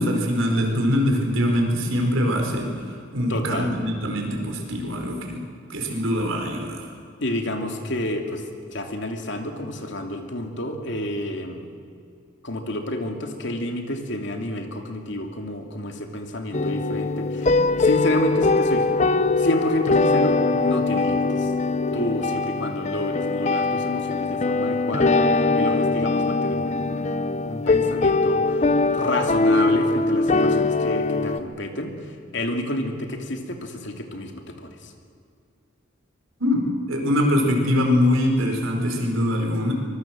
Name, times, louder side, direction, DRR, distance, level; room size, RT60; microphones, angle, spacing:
voice 1, 0.0-2.7 3.1-5.4 5.7-6.9 36.4-39.7, left 1 dB, 90° right, 2 dB, 5.0 m, -23 dB
voice 2, 3.3-3.7 7.2-8.4 8.7-11.7 12.4-18.9 19.4-21.5 21.9-28.6 28.9-34.9, left 1 dB, 60° left, 4 dB, 2.8 m, -29 dB
sound 1, 16.5-31.4, left 3 dB, 35° left, 0.8 m, -22 dB
24.5 x 22.0 x 7.7 m, 2.4 s
head